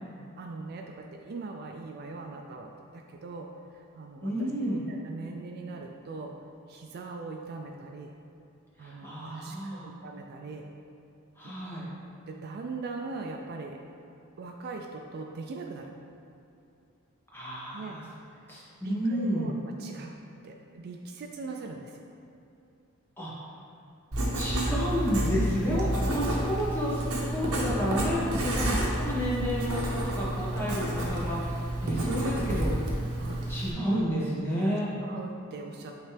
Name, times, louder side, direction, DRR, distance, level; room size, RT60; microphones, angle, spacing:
voice 1, 0.0-3.5 4.0-6.3 6.7-8.1 8.8-10.7 11.4-11.5 12.3-13.8 14.4-15.9 17.7-18.0 18.4-18.5 18.8-20.2 20.4-22.0 30.5-30.7 33.2-33.5 35.0-35.9, right 3 dB, 45° right, 2 dB, 0.3 m, -41 dB
voice 2, 4.2-4.8 8.8-9.9 11.4-11.9 17.3-18.0 18.5-19.5 23.2-23.3 24.3-27.0 27.3-32.9 33.5-34.9, equal, 10° left, -8 dB, 1.3 m, -31 dB
Writing, 24.1-33.7, right 1 dB, 75° right, 0.9 m, -30 dB
8.7 x 3.2 x 3.3 m, 2.8 s
head